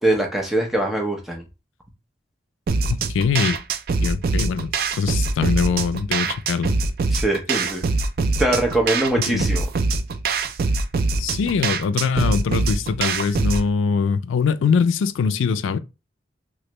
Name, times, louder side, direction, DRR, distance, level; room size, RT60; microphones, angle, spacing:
voice 1, 0.0-1.4 7.1-7.8 8.4-9.7, right 1 dB, ahead, 0.6 m, -22 dB
sound 1, 2.7-13.7, right 3 dB, 50° right, 0.3 m, -23 dB
voice 2, 2.9-3.6 4.0-6.8 9.3-9.5 11.2-15.8, left 5 dB, 85° left, 0.3 m, -22 dB
3.2 x 2.4 x 3.0 m
head